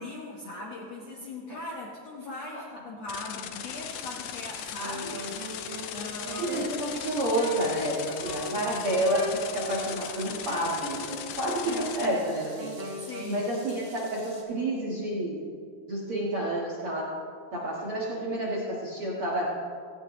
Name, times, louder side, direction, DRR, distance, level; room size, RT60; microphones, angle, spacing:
voice 1, 0.0-5.4 5.7-6.7 8.6-8.7 13.0-13.5, left 2 dB, 65° left, -3 dB, 1.7 m, -39 dB
sound 1, 3.1-12.1, left 10 dB, 85° left, 1.9 m, -38 dB
sound 2, 3.9-14.4, right 1 dB, 10° right, 1.2 m, -51 dB
Wind instrument woodwind instrument, 4.7-13.4, right 2 dB, 80° right, 1.0 m, -40 dB
voice 2, 6.4-12.7 13.3-15.5 15.9-17.1 17.5-19.6, right 1 dB, 50° right, -5 dB, 1.7 m, -29 dB
17.5 x 15.5 x 3.1 m, 2.2 s
omnidirectional pair, 4.6 m